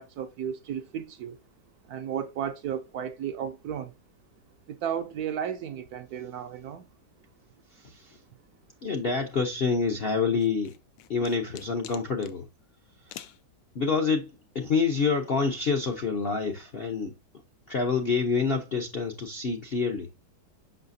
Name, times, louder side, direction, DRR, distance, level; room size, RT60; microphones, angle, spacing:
voice 1, 0.0-1.4 1.9-3.9 4.7-6.8, right 8 dB, 70° right, 0.9 m, -34 dB
voice 2, 7.7-8.2 8.8-10.8 11.1-12.5 13.2-13.3 13.7-17.1 17.7-20.1, left 5 dB, 60° left, 0.6 m, -27 dB
sound 1, 10.4-12.4 13.1-13.4, left 11 dB, 85° left, 1.3 m, -45 dB
6.6 x 5.6 x 2.6 m
omnidirectional pair, 1.9 m